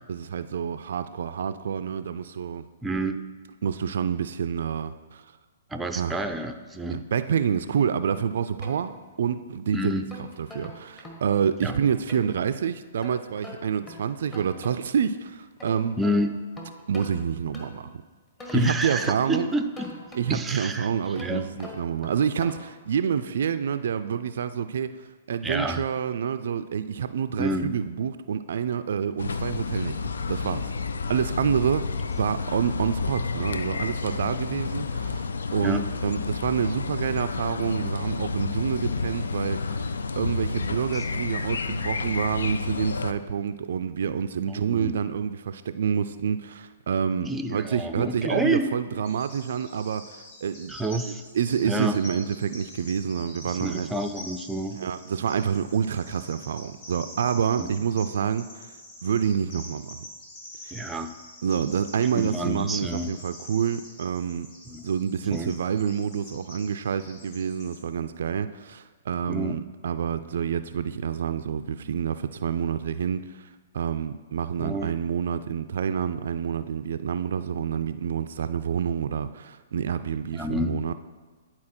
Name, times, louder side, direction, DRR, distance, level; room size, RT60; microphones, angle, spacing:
voice 1, 0.1-2.7 3.6-5.2 5.9-6.2 6.9-10.0 10.4-16.0 16.9-17.9 18.5-19.5 20.1-30.7 31.1-31.9 32.2-50.7 51.1-53.9 54.8-58.7 59.0-60.0 60.6-60.8 61.4-64.5 64.8-80.9, right 7 dB, 65° right, 11 dB, 0.3 m, -28 dB
voice 2, 2.8-3.2 5.7-7.0 9.7-10.1 11.6-11.7 16.0-16.3 18.5-20.0 20.3-20.9 21.2-21.5 25.4-25.8 27.4-27.7 35.6-35.8 44.5-45.0 47.3-48.8 50.7-51.2 51.6-52.0 53.4-54.8 57.6-57.7 60.7-61.2 62.1-63.2 64.7-64.8 65.3-65.5 69.3-69.6 74.6-75.0 80.3-80.8, right 1 dB, 10° right, 7 dB, 0.5 m, -29 dB
sound 1, 8.1-9.4 9.9-12.3 13.0-15.0 15.4-17.9 18.4-20.6 21.1-22.8, left 1 dB, 15° left, 1.5 m, -44 dB
sound 2, 29.2-43.1, left 4 dB, 80° left, 0.4 m, -30 dB
Bird vocalization bird call bird song, 49.0-67.8, left 1 dB, 45° left, 2.2 m, -46 dB
10.5 x 4.3 x 4.3 m, 1.4 s
hypercardioid pair, 125°, 0 cm